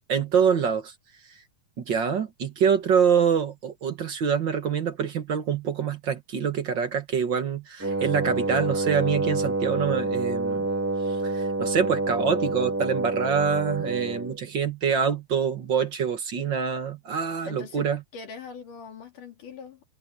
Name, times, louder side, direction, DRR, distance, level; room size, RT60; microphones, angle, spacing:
voice 1, 0.1-0.9 1.8-10.6 11.2-18.0, right 7 dB, 45° right, 1.6 m, -25 dB
Wind instrument woodwind instrument, 7.8-14.4, right 2 dB, 10° right, 1.0 m, -28 dB
voice 2, 17.4-19.8, left 5 dB, 70° left, 4.7 m, -42 dB
omnidirectional pair, 3.8 m